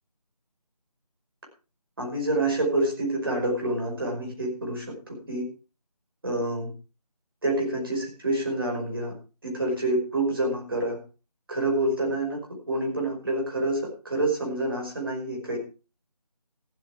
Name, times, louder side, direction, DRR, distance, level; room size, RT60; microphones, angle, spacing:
voice 1, 2.0-5.5 6.2-6.7 7.4-9.1 9.4-11.0 11.5-12.4 12.7-15.6, right 2 dB, 35° right, 1 dB, 5.4 m, -27 dB
14.5 x 11.0 x 4.7 m, 0.35 s
figure-of-eight pair, 180°, 21 cm